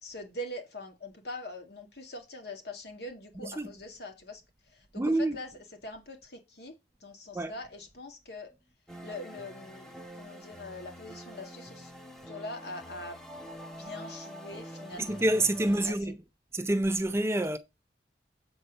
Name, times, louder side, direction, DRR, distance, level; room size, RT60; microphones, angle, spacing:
voice 1, 0.0-4.4 4.7-5.5 5.8-8.5 9.0-11.9 12.3-13.2 13.8-15.3 15.8-16.0, left 1 dB, 65° left, 2.1 m, -43 dB
voice 2, 3.4-3.7 5.0-5.4 7.3-7.5 15.0-16.2 16.5-17.6, right 1 dB, 15° right, 0.5 m, -27 dB
sound 1, 8.9-15.9, equal, 5° left, 1.4 m, -46 dB
7.7 x 4.2 x 6.5 m
head